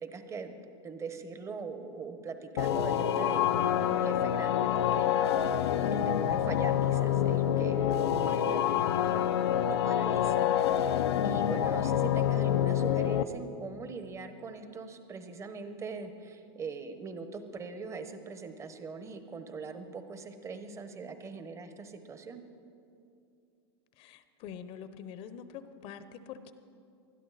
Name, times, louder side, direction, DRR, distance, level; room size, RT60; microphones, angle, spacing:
voice 1, 0.0-5.1 5.9-8.7 9.0-9.3 9.7-22.4, right 4 dB, 20° right, 9 dB, 1.1 m, -41 dB
sound 1, 2.6-13.2, left 10 dB, 85° left, 0.7 m, -27 dB
voice 2, 24.0-26.5, left 8 dB, 45° left, 12 dB, 0.9 m, -45 dB
20.0 x 12.5 x 4.2 m, 2.6 s
hypercardioid pair, 120°, 13 cm